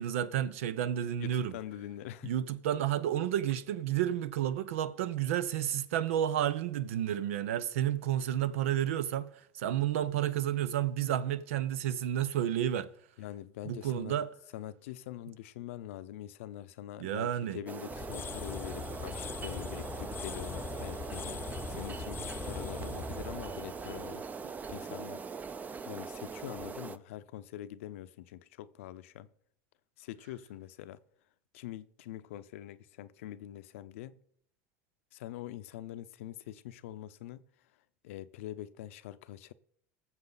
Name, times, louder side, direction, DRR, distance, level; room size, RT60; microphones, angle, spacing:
voice 1, 0.0-1.5 2.2-9.3 9.6-12.9 13.6-14.3 17.0-17.6, right 11 dB, 90° right, 0.8 m, -31 dB
voice 2, 1.2-2.3 13.2-14.2 14.5-24.3 24.7-25.2 25.8-29.3 30.0-31.0 31.5-34.2 35.1-37.5 38.0-39.5, left 12 dB, 90° left, 0.7 m, -44 dB
sound 1, 17.7-27.0, right 5 dB, 25° right, 0.6 m, -41 dB
sound 2, 17.9-24.8, left 9 dB, 35° left, 0.4 m, -42 dB
19.0 x 7.4 x 4.0 m
supercardioid pair, 115°, 7 cm